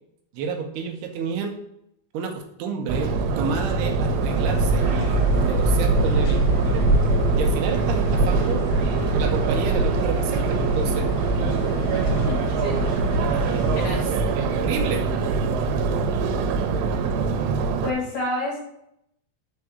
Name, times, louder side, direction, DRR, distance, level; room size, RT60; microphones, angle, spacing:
voice 1, 0.3-1.6 2.1-7.0 7.4-8.7 9.1-11.1 13.1-14.0 14.4-15.1, right 5 dB, 75° right, 4 dB, 2.6 m, -30 dB
Subway metro underground, 2.9-17.9, right 3 dB, 90° right, 3.3 m, -23 dB
sound 1, 4.1-14.2, left 1 dB, 85° left, 3.4 m, -30 dB
voice 2, 12.3-12.9 13.2-14.0 17.8-18.7, left 1 dB, 45° left, -3 dB, 3.2 m, -30 dB
6.7 x 4.8 x 6.9 m, 0.76 s
omnidirectional pair, 5.3 m